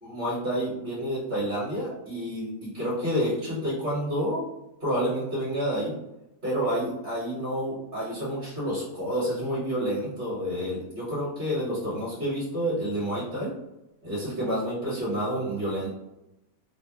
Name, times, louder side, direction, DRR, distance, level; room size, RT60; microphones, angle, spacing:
voice 1, 0.0-4.4 4.8-5.9 6.4-13.5 14.0-15.9, equal, 40° right, -9 dB, 1.4 m, -29 dB
3.0 x 2.2 x 2.9 m, 0.91 s
omnidirectional pair, 1.6 m